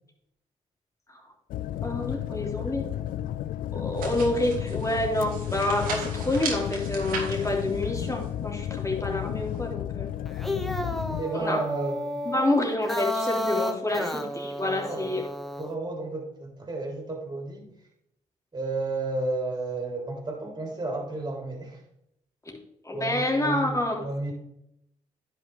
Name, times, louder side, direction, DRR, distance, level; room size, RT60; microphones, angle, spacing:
sound 1, 1.5-11.2, left 12 dB, 75° left, 0.5 m, -33 dB
voice 1, 1.8-2.9 3.7-10.1 11.3-11.6 12.2-15.2 22.4-22.6 22.8-24.0, left 1 dB, 20° left, -1 dB, 3.2 m, -28 dB
sound 2, 4.0-9.7, right 4 dB, 85° right, 2.1 m, -38 dB
sound 3, 10.3-15.7, left 1 dB, ahead, 1.1 m, -32 dB
voice 2, 11.2-12.2 13.9-14.2 14.8-15.1 15.6-17.7 18.5-21.8 22.9-24.3, right 2 dB, 25° right, 1 dB, 3.5 m, -32 dB
10.5 x 6.1 x 3.5 m, 0.78 s
supercardioid pair, 55°, 14 cm